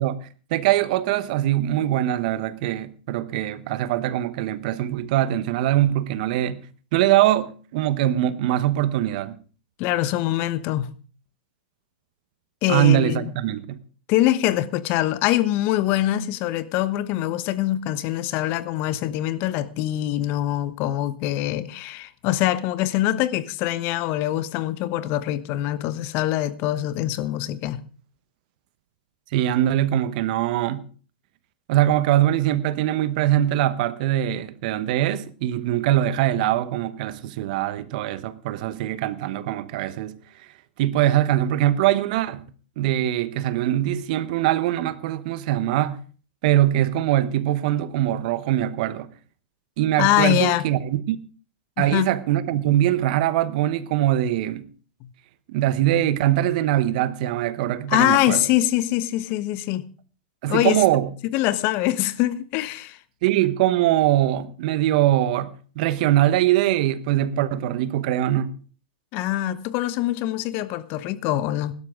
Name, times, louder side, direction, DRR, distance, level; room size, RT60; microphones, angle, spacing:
voice 1, 0.0-6.6 6.9-9.4 12.7-13.8 29.3-30.8 31.7-40.2 40.8-42.4 42.8-46.0 46.4-49.1 49.8-51.2 51.8-54.7 55.5-58.4 60.4-61.1 63.2-68.5, right 13 dB, 55° right, 1.0 m, -22 dB
voice 2, 9.8-10.9 12.6-13.3 14.1-27.8 50.0-50.7 51.8-52.1 55.0-55.1 57.9-59.9 60.5-60.8 61.3-63.0 69.1-71.7, left 14 dB, 45° left, 1.1 m, -24 dB
16.5 x 12.0 x 3.7 m
hypercardioid pair, 120°, 5 cm